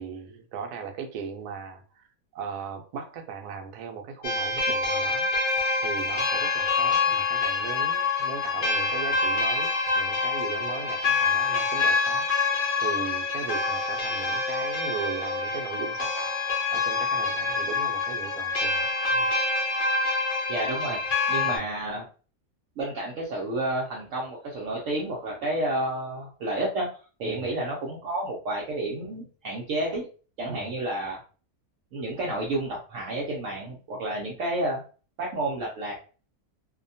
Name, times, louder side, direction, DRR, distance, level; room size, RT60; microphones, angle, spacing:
voice 1, 0.0-2.1 2.3-5.3 5.8-12.3 12.8-16.3 16.7-19.3 21.4-21.7 27.2-27.5 30.4-30.7, right 6 dB, 85° right, 1.1 m, -38 dB
sound 1, 4.2-21.6, left 3 dB, 50° left, 0.7 m, -26 dB
voice 2, 20.5-21.0 21.3-22.1 22.8-26.9 27.2-30.1 30.4-31.2 31.9-34.8 35.2-35.9, right 1 dB, 65° right, 0.9 m, -30 dB
2.7 x 2.2 x 2.6 m
omnidirectional pair, 1.6 m